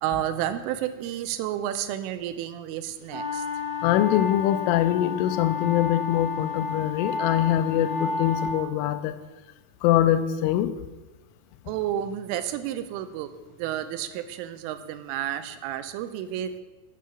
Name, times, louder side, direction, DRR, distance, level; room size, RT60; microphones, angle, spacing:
voice 1, 0.0-3.4 11.7-13.3 13.6-16.6, right 11 dB, 85° right, 3.2 m, -31 dB
sound 1, 3.1-8.6, left 5 dB, 35° right, 2.0 m, -31 dB
voice 2, 3.8-9.2 9.8-10.8, left 12 dB, 85° left, 3.1 m, -23 dB
11.0 x 8.5 x 7.0 m
omnidirectional pair, 5.8 m